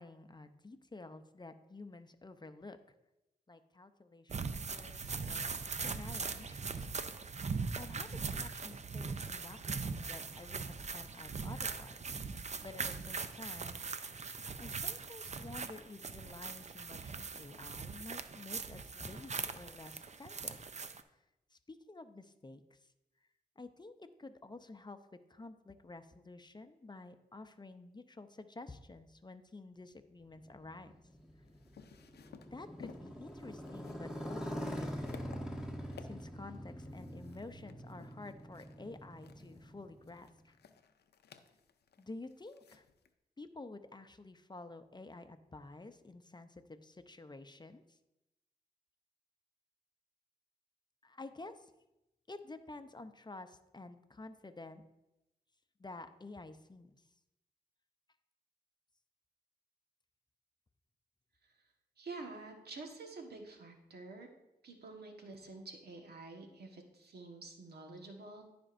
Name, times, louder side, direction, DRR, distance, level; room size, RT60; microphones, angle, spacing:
voice 1, 0.0-2.8 3.5-5.5 5.8-6.9 7.7-12.0 12.6-13.8 14.6-20.6 21.5-22.8 23.6-30.9 32.5-35.1 36.0-40.5 42.0-42.8 43.4-48.0 51.0-51.7 52.3-54.8 55.8-57.0, left 2 dB, 25° left, 9 dB, 0.6 m, -51 dB
sound 1, 4.3-21.0, right 4 dB, 45° right, 0.6 m, -41 dB
Motorcycle, 30.4-40.3, equal, 5° right, 1.8 m, -44 dB
sound 2, 31.2-43.1, left 6 dB, 85° left, 0.5 m, -58 dB
voice 2, 62.0-64.3 64.6-68.4, right 3 dB, 75° right, 2 dB, 1.4 m, -48 dB
14.5 x 5.1 x 2.6 m, 0.94 s
cardioid pair, 50°, 17 cm